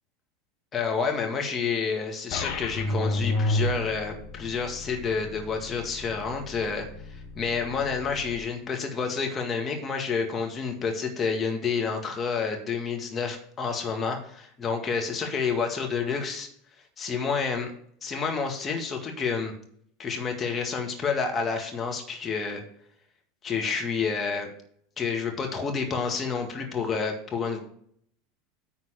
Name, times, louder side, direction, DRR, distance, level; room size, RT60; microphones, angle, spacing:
voice 1, 0.7-6.9 7.4-16.5 17.0-17.7 18.0-19.5 20.0-22.6 23.4-24.5 25.0-27.6, left 5 dB, 25° left, 2 dB, 1.9 m, -29 dB
sound 1, 2.3-8.3, left 1 dB, 50° left, 1.4 m, -32 dB
9.6 x 4.1 x 6.8 m, 0.63 s
figure-of-eight pair, 80°, 0 cm